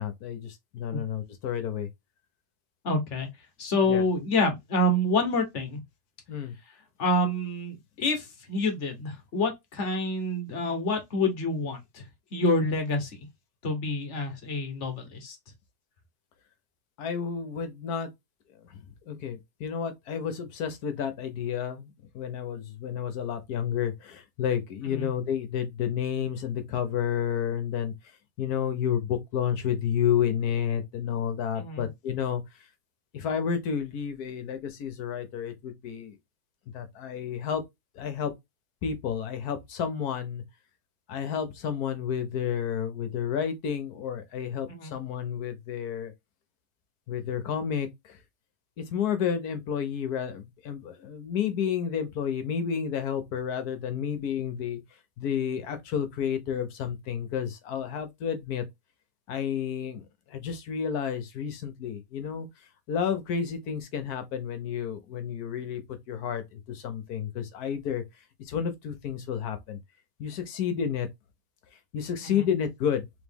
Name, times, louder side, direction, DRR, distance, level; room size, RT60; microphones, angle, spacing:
voice 1, 0.0-1.9 3.9-4.0 6.3-6.5 17.0-18.1 18.7-18.8 19.1-27.9 28.4-32.4 33.1-36.1 36.7-37.6 37.9-38.3 38.8-40.4 41.1-46.1 47.1-48.2 48.8-54.8 55.2-58.6 59.3-62.5 62.9-65.8 66.1-68.0 68.4-69.8 70.2-71.1 71.9-73.1, left 8 dB, 70° left, 1.3 m, -31 dB
voice 2, 2.8-3.3 3.6-5.8 7.0-12.0 12.3-13.3 13.6-15.4 24.8-25.1 31.6-31.8 44.7-44.9 72.2-72.5, left 2 dB, 50° left, 1.3 m, -27 dB
3.5 x 3.1 x 3.5 m
omnidirectional pair, 1.8 m